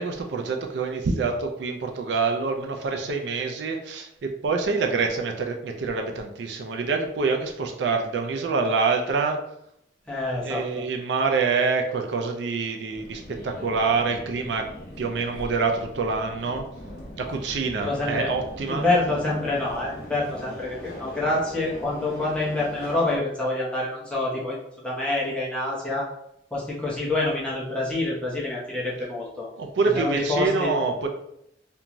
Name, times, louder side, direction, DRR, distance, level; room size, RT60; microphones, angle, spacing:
voice 1, 0.0-9.4 10.4-14.7 15.0-16.6 17.2-18.9 29.6-31.1, right 4 dB, 75° right, 3 dB, 0.4 m, -26 dB
voice 2, 10.1-10.8 17.8-18.3 18.6-24.6 24.8-26.1 26.5-29.5 29.9-30.8, left 2 dB, 5° left, -6 dB, 0.8 m, -27 dB
Subway metro underground, 12.9-23.2, left 1 dB, 55° left, 0.7 m, -41 dB
2.5 x 2.3 x 2.9 m, 0.77 s
head